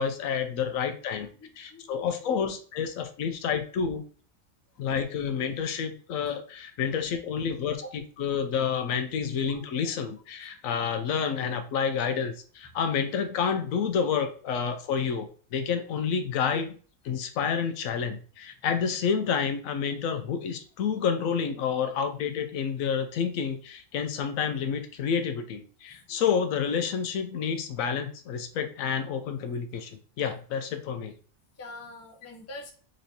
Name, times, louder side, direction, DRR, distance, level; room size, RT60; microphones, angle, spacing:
voice 1, 0.0-1.3 1.6-4.0 4.8-7.8 8.2-16.7 17.1-31.1, left 6 dB, 80° left, 8 dB, 1.0 m, -29 dB
voice 2, 1.2-2.5 3.3-3.4 4.7-4.8 7.8-7.9 9.3-9.7 10.5-10.6 16.5-16.6 25.9-26.2 27.3-27.4 31.6-32.7, left 2 dB, 20° left, 1 dB, 0.4 m, -45 dB
3.9 x 3.2 x 2.7 m, 0.41 s
omnidirectional pair, 1.4 m